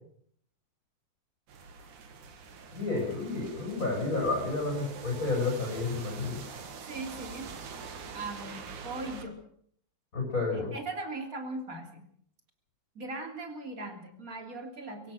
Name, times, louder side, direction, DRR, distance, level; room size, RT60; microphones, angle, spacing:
sound 1, 1.5-9.3, right 5 dB, 80° right, 3.5 m, -45 dB
voice 1, 2.7-6.4 10.1-10.7, left 3 dB, 25° left, -1 dB, 6.4 m, -30 dB
voice 2, 6.9-7.5 8.1-9.3 10.5-12.0 12.9-15.1, right 2 dB, 25° right, 4 dB, 3.3 m, -39 dB
24.5 x 16.5 x 6.4 m, 0.64 s
omnidirectional pair, 3.5 m